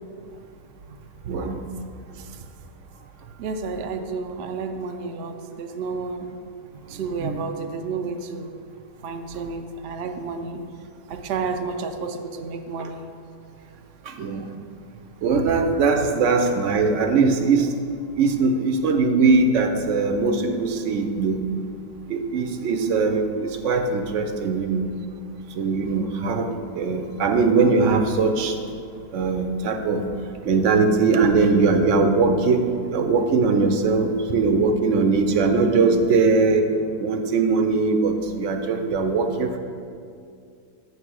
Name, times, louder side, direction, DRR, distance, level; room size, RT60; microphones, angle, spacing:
voice 1, 1.3-1.6 7.2-7.5 12.8-12.9 14.1-14.5 15.2-17.7 18.2-21.4 22.1-24.8 25.6-26.5 26.7-28.5 29.1-30.0 30.4-32.6 32.9-36.7 37.0-39.6, right 4 dB, 65° right, 6 dB, 0.8 m, -21 dB
voice 2, 2.1-2.5 3.4-6.3 6.9-8.6 9.0-10.7 11.1-13.1, right 4 dB, 80° right, 6 dB, 0.5 m, -31 dB
9.3 x 3.2 x 6.1 m, 2.4 s
omnidirectional pair, 1.6 m